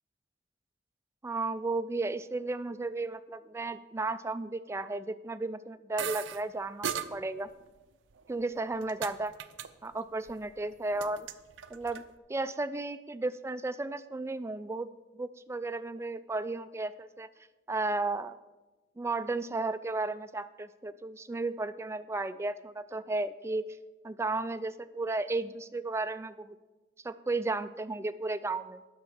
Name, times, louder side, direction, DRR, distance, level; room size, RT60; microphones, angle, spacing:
voice 1, 1.2-7.5 8.3-9.3 9.8-11.3 11.7-12.0 12.3-14.9 15.2-17.3 17.7-18.4 19.0-23.7 24.0-26.6 27.0-28.8, right 2 dB, 15° right, 13 dB, 0.3 m, -34 dB
sound 1, 6.0-6.4 6.8-7.1 8.1-9.1 9.4-9.7 9.9-10.4 10.7-12.0, right 8 dB, 80° right, 0.6 m, -37 dB
10.5 x 6.1 x 6.4 m, 1.1 s
head